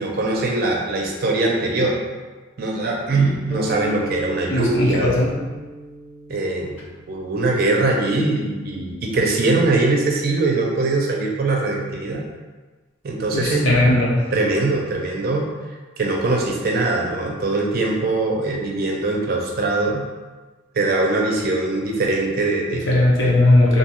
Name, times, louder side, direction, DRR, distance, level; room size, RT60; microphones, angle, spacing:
voice 1, 0.0-2.0 2.6-5.2 6.3-6.8 7.1-12.2 13.0-13.7 14.3-15.5 16.0-20.0 20.7-22.9, right 2 dB, 50° right, 0 dB, 0.4 m, -22 dB
sound 1, 3.5-7.8, equal, 35° left, 0.5 m, -35 dB
voice 2, 4.5-5.3 13.3-14.2 22.9-23.8, left 1 dB, 70° left, -4 dB, 0.7 m, -17 dB
2.6 x 2.2 x 2.9 m, 1.3 s
head